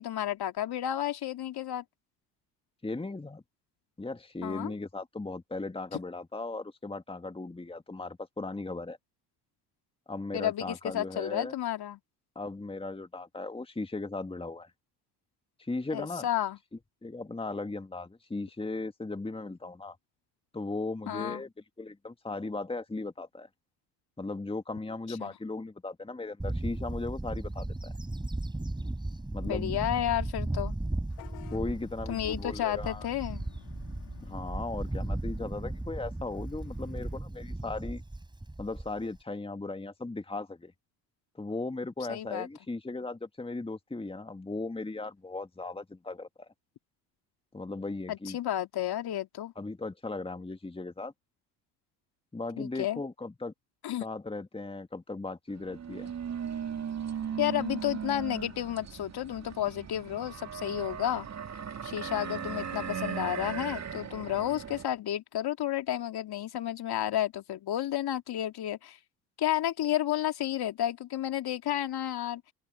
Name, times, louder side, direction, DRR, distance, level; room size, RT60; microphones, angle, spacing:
voice 1, 0.0-1.8 4.4-4.7 10.3-12.0 15.9-16.6 21.1-21.4 25.2-25.3 29.4-30.8 32.1-33.5 42.1-42.5 48.1-49.5 52.6-53.0 53.8-54.0 57.4-61.3 61.8-69.0 69.4-72.4, left 12 dB, 50° left, 2.8 m, -31 dB
voice 2, 2.8-3.4 4.0-9.0 10.1-11.5 12.4-14.7 15.6-16.3 17.0-20.0 20.5-21.5 21.8-23.5 24.2-27.9 29.3-29.7 31.5-33.1 34.2-38.0 38.6-40.7 41.4-46.5 47.5-48.4 49.6-51.1 52.3-53.5 54.0-56.1, left 3 dB, 10° left, 2.4 m, -37 dB
Bird / Wind, 26.4-39.2, right 2 dB, 10° right, 4.4 m, -36 dB
Vehicle horn car horn honking / Bus, 31.1-37.2, left 27 dB, 75° left, 2.9 m, -53 dB
sound 1, 55.5-64.8, right 8 dB, 35° right, 2.3 m, -38 dB
open air
hypercardioid pair, 65°, 47 cm